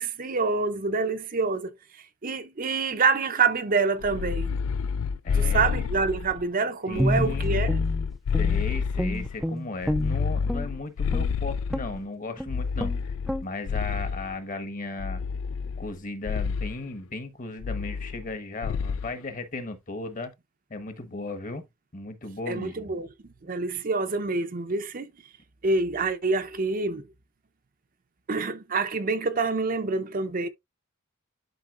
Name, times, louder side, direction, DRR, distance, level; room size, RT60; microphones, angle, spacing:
voice 1, 0.0-1.7 2.2-4.6 5.3-7.8 22.5-23.1 23.4-25.1 25.6-27.1 28.3-30.5, right 4 dB, 40° right, 0.6 m, -26 dB
sound 1, 4.0-6.4 6.9-9.4 9.8-12.0 12.5-14.4 15.0-16.0 16.2-16.7 17.6-18.3 18.6-19.1, left 6 dB, 70° left, 0.3 m, -28 dB
voice 2, 5.2-5.9 6.9-7.5 8.3-13.1 13.4-15.2 15.8-20.3 20.7-21.7 21.9-22.7, left 2 dB, 40° left, 1.2 m, -36 dB
Guitar, 7.0-8.7 9.0-10.7 11.1-11.3 11.7-12.0 12.4-12.5 12.8-13.0 13.3-13.5, equal, ahead, 0.4 m, -29 dB
11.0 x 4.0 x 2.4 m
head